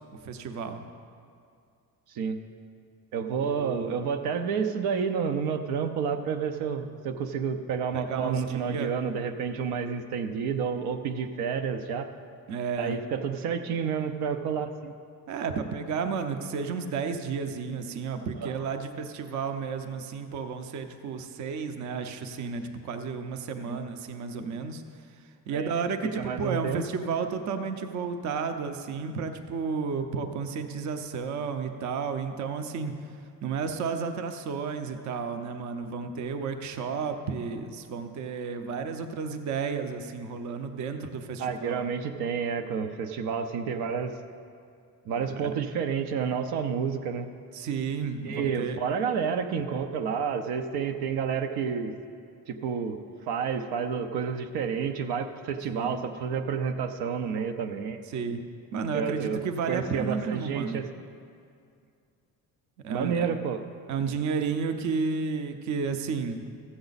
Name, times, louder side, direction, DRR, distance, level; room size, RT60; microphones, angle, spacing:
voice 1, 0.2-0.9 3.4-4.0 7.9-8.9 12.5-13.0 15.3-24.8 25.5-32.9 33.4-41.8 45.2-45.5 47.5-48.8 55.7-56.0 58.1-58.4 58.7-60.8 62.8-63.3 63.9-66.5, right 5 dB, 50° right, 7 dB, 0.7 m, -32 dB
voice 2, 3.1-12.1 12.8-14.9 18.4-18.7 23.6-23.8 25.5-25.7 26.2-26.8 41.4-44.1 45.1-47.3 48.2-51.9 52.5-53.0 53.3-58.0 58.9-59.4 59.7-60.9 62.9-63.6, right 6 dB, 85° right, 6 dB, 0.7 m, -30 dB
14.0 x 7.9 x 4.0 m, 2.4 s
cardioid pair, 150°, 37 cm